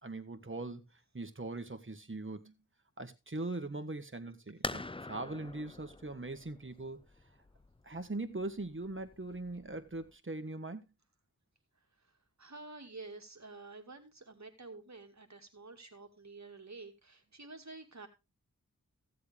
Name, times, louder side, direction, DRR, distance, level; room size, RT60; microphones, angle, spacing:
voice 1, 0.0-0.8 1.1-2.5 3.0-4.8 5.1-7.0 7.8-10.8, right 2 dB, 40° right, 1.8 m, -41 dB
sound 1, 4.6-10.1, left 2 dB, 15° left, 0.5 m, -45 dB
voice 2, 12.4-18.1, right 3 dB, 55° right, 2.2 m, -50 dB
15.0 x 7.8 x 3.5 m
wide cardioid pair, 40°, 32 cm